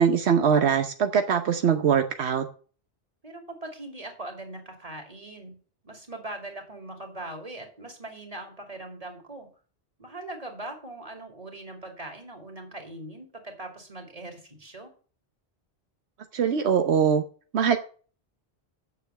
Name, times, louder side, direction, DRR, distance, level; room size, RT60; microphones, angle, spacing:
voice 1, 0.0-2.5 16.3-17.2 17.5-17.8, right 7 dB, 80° right, 7 dB, 1.1 m, -22 dB
voice 2, 3.2-5.6 5.8-9.5 10.0-14.9, right 2 dB, 35° right, 3 dB, 2.8 m, -40 dB
8.5 x 6.9 x 8.0 m, 0.41 s
omnidirectional pair, 1.1 m